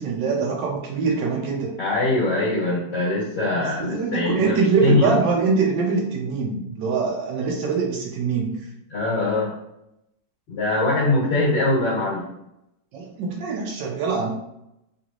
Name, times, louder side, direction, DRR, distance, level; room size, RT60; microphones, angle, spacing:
voice 1, 0.0-1.7 3.5-8.6 12.9-14.3, right 5 dB, 75° right, -2 dB, 1.2 m, -23 dB
voice 2, 1.8-5.2 8.9-9.5 10.5-12.2, left 2 dB, 70° left, -8 dB, 1.8 m, -22 dB
3.9 x 3.0 x 2.4 m, 0.84 s
omnidirectional pair, 2.0 m